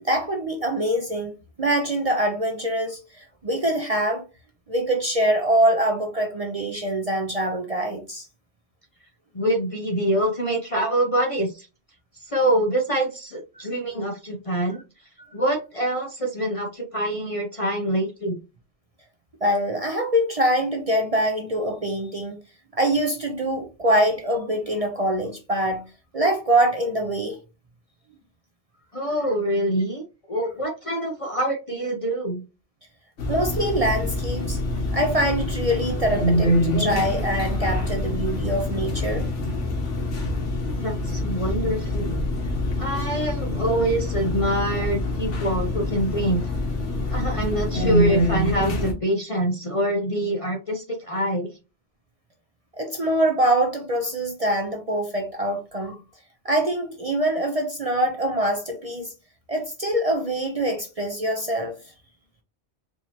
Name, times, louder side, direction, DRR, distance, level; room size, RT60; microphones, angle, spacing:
voice 1, 0.0-4.2 4.7-8.3 15.2-15.3 19.4-22.4 22.8-25.8 26.1-27.4 33.2-34.6 34.9-39.3 52.7-56.0 56.4-59.1 59.5-61.8, right 1 dB, 40° right, 0.6 m, -24 dB
voice 2, 9.3-11.7 12.2-14.8 15.3-18.4 28.9-30.0 30.3-32.4 40.8-42.2 42.8-46.4 47.1-51.5, right 1 dB, 35° left, 0.6 m, -25 dB
sound 1, 33.2-48.9, left 1 dB, 85° left, 1.4 m, -25 dB
4.7 x 2.8 x 2.8 m
omnidirectional pair, 1.2 m